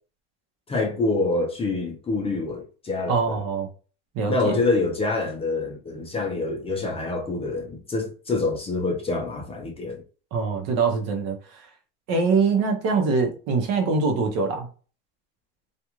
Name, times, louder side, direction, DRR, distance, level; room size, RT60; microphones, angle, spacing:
voice 1, 0.7-3.4 4.3-10.0, left 3 dB, 20° left, 0.6 m, -26 dB
voice 2, 3.1-3.7 4.1-4.6 10.3-11.4 12.1-14.7, right 4 dB, 55° right, 0.9 m, -23 dB
2.4 x 2.4 x 3.0 m
supercardioid pair, 125°, 30 cm